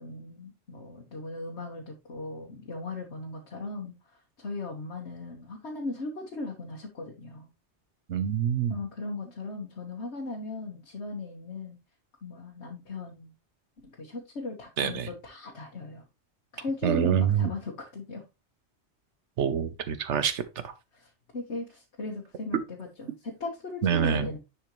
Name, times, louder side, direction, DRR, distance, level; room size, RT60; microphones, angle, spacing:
voice 1, 0.0-7.5 8.7-11.8 12.2-13.3 13.8-16.0 16.5-18.2 20.9-24.4, left 3 dB, 75° left, 1.6 m, -38 dB
voice 2, 8.1-8.8 14.8-15.1 16.8-17.5 19.4-20.7 23.8-24.3, right 8 dB, 85° right, 1.1 m, -26 dB
10.5 x 4.3 x 3.1 m
omnidirectional pair, 1.1 m